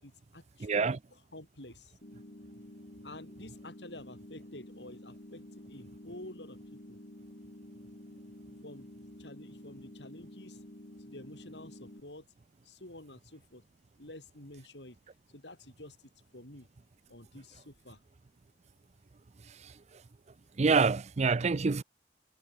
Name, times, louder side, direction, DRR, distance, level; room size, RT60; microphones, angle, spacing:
voice 1, 0.0-1.9 3.0-5.4 5.7-7.0 8.6-8.9 9.2-10.6 11.0-12.3 12.6-13.6 14.0-15.0 15.3-16.7 17.1-18.0, left 1 dB, 75° left, 6.7 m, -49 dB
voice 2, 0.6-1.0 20.6-21.8, right 4 dB, 40° right, 0.5 m, -26 dB
sound 1, 2.0-12.0, left 1 dB, 50° left, 3.9 m, -50 dB
head